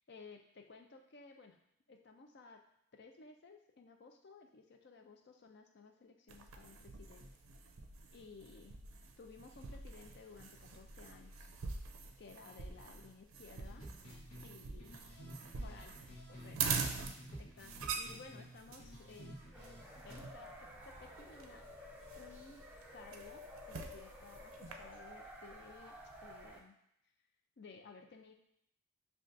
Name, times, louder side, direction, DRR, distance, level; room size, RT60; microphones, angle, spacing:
voice 1, 0.1-1.6 1.9-2.6 2.9-7.3 8.1-8.8 9.2-11.5 12.2-13.8 14.4-14.9 15.6-16.0 16.3-16.6 17.4-19.4 20.0-21.7 22.1-22.6 22.9-26.0 26.2-26.8 27.6-28.3, left 4 dB, 50° left, 4 dB, 0.4 m, -56 dB
sound 1, 6.3-24.7, right 5 dB, 75° right, 0.4 m, -45 dB
sound 2, 13.6-16.6 16.8-20.2, equal, 75° left, 1.1 m, -52 dB
sound 3, 19.5-26.6, left 1 dB, 5° right, 0.4 m, -53 dB
6.5 x 2.4 x 2.5 m, 0.76 s
head